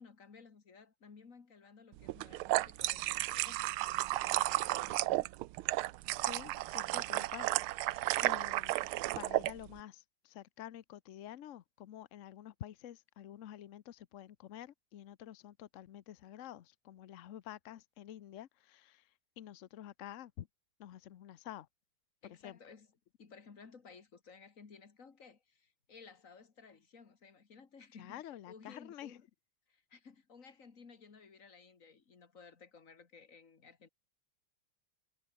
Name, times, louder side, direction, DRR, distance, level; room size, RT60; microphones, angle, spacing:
voice 1, 0.0-5.3 22.2-22.9 23.2-29.2 29.7-33.9, left 5 dB, 40° left, 2.3 m, -57 dB
sound 1, 2.1-9.5, right 17 dB, 90° right, 1.5 m, -33 dB
voice 2, 6.3-8.8 9.2-20.5 20.8-21.7 22.4-22.6 28.0-29.2, left 11 dB, 80° left, 0.6 m, -49 dB
omnidirectional pair, 2.3 m